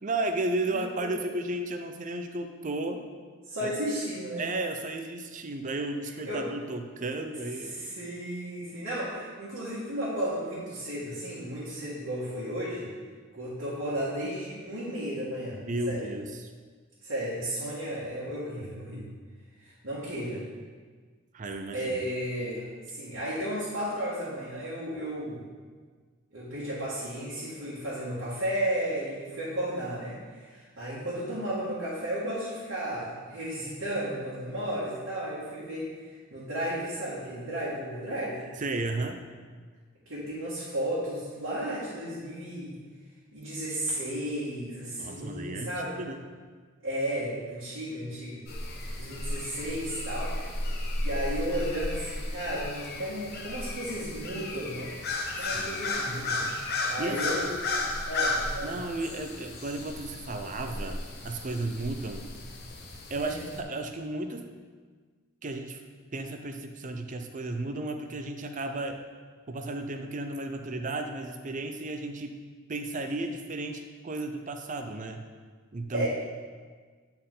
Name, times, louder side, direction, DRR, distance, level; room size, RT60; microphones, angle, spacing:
voice 1, 0.0-3.0 3.6-3.7 4.4-7.9 15.7-16.5 21.3-22.0 38.6-39.2 45.0-46.2 55.4-55.8 56.7-57.2 58.6-62.3 63.1-64.5 65.4-65.8 66.1-69.0 69.5-72.4 72.7-75.2 75.7-76.1, right 2 dB, 35° right, 6 dB, 0.5 m, -34 dB
voice 2, 0.7-1.3 3.5-4.4 6.3-6.4 7.6-12.9 13.3-15.6 15.9-16.0 17.0-19.0 19.6-20.4 21.7-25.4 26.3-38.4 40.1-42.8 43.3-46.0 46.8-48.4 49.0-50.4 51.0-54.9 55.4-57.5 58.1-58.8 63.1-63.4 75.9-76.1, right 1 dB, 65° right, -10 dB, 1.7 m, -34 dB
sound 1, 48.5-63.6, left 2 dB, 50° left, 0.8 m, -34 dB
9.5 x 4.4 x 3.8 m, 1.5 s
head